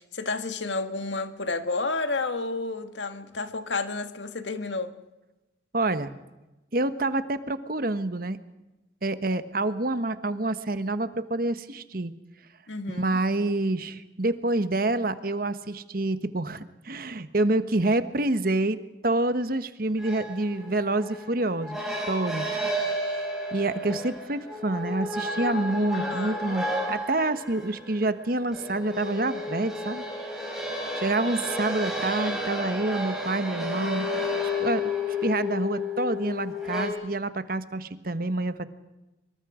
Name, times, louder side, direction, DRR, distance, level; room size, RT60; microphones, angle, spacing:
voice 1, 0.0-4.9 12.7-13.2 25.9-26.5, left 3 dB, 85° left, 8 dB, 1.8 m, -31 dB
voice 2, 5.7-6.1 6.7-8.4 9.0-12.1 12.9-18.8 19.0-22.5 23.0-23.2 23.5-30.5 30.9-34.1 34.6-34.9 35.2-38.6, right 2 dB, 50° right, 11 dB, 1.3 m, -27 dB
sound 1, 20.0-36.9, left 1 dB, 5° right, 6.3 m, -32 dB
25.5 x 23.5 x 5.0 m, 1.0 s
head